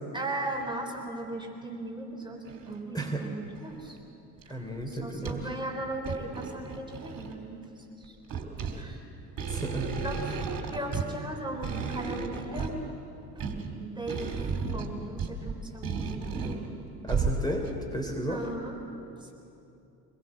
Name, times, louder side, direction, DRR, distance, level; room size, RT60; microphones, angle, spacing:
voice 1, 0.1-4.0 4.4-7.7 8.0-8.2 8.7-9.0 9.5-9.6 10.0-10.2 10.7-12.9 13.8-16.3 18.3-18.8 19.2-19.3, right 2 dB, 10° right, 1 dB, 3.7 m, -37 dB
sound 1, 0.6-0.7 1.3-1.4 2.5-2.8 3.5-4.0 4.4-4.5 4.8-5.6 5.9-7.5 8.0-17.8 18.4-18.5, right 5 dB, 40° right, 3.2 m, -34 dB
voice 2, 2.9-3.3 4.5-5.5 9.5-9.9 17.0-18.5, right 1 dB, 10° left, 2 dB, 3.5 m, -33 dB
24.0 x 21.5 x 7.4 m, 2.7 s
hypercardioid pair, 60°, 49 cm